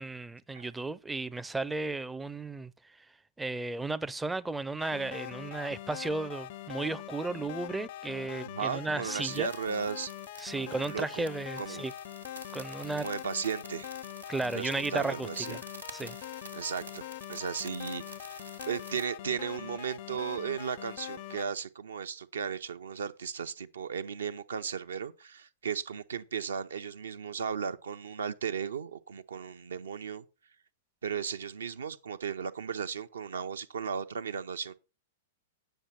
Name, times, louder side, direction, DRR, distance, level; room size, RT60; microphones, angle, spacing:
voice 1, 0.0-2.7 3.0-3.1 3.4-9.5 10.4-11.9 12.5-13.1 14.3-15.6 15.9-16.2, right 3 dB, 5° right, 0.4 m, -34 dB
sound 1, 4.8-21.5, left 14 dB, 45° left, 0.4 m, -43 dB
voice 2, 8.4-10.1 10.6-11.3 11.6-11.9 12.9-13.9 14.5-15.6 16.5-30.2 31.0-34.7, right 7 dB, 65° right, 0.7 m, -36 dB
sound 2, 9.1-19.1, right 3 dB, 85° right, 1.4 m, -50 dB
9.1 x 6.3 x 5.8 m
figure-of-eight pair, 100°, 0 cm